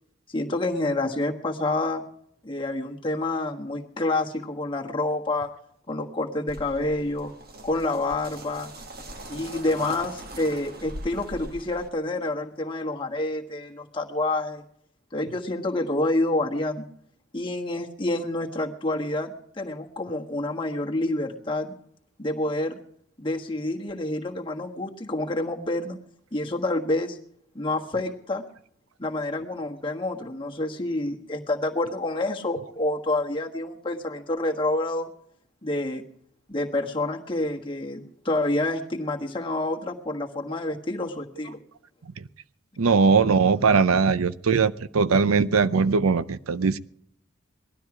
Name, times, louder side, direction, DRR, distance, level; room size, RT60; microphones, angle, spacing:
voice 1, 0.3-2.0 2.4-5.5 5.9-7.3 7.6-8.7 9.3-14.6 15.1-16.9 17.3-21.7 22.2-22.8 23.2-26.0 26.3-27.2 27.5-28.4 29.0-35.1 35.6-36.0 36.5-41.6, left 2 dB, 25° left, 1 dB, 1.4 m, -28 dB
sound 1, 6.5-11.9, right 1 dB, 45° right, 1.7 m, -41 dB
voice 2, 42.8-46.8, right 5 dB, 90° right, 15 dB, 0.6 m, -20 dB
19.0 x 12.5 x 4.9 m, 0.69 s
head